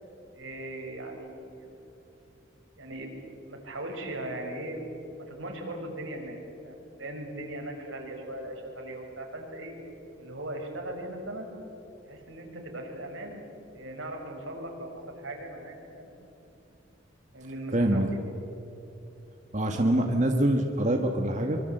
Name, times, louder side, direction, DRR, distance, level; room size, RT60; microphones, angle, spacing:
voice 1, 0.3-1.7 2.8-3.1 3.4-4.9 5.2-6.4 6.6-9.7 10.2-11.5 12.1-13.4 13.7-16.1 17.3-18.0, right 1 dB, 85° right, 2 dB, 5.2 m, -39 dB
voice 2, 17.7-18.1 19.5-21.6, right 1 dB, 40° right, 4 dB, 1.5 m, -25 dB
24.5 x 23.5 x 7.9 m, 2.9 s
head